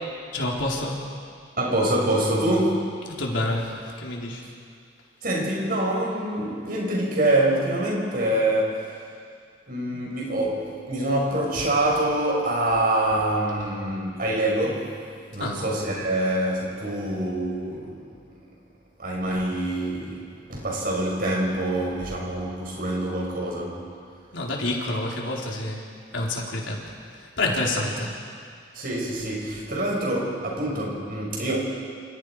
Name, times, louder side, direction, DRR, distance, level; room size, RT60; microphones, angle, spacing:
voice 1, 0.3-1.0 3.1-4.4 15.4-15.6 24.3-25.8 26.1-26.8 27.1-28.1, left 2 dB, 75° left, -2 dB, 4.4 m, -28 dB
voice 2, 1.6-2.8 5.2-8.8 9.7-15.0 15.3-18.0 19.0-23.9 28.7-31.6, right 1 dB, 50° right, -2 dB, 6.2 m, -25 dB
28.5 x 28.0 x 5.1 m, 2.2 s
head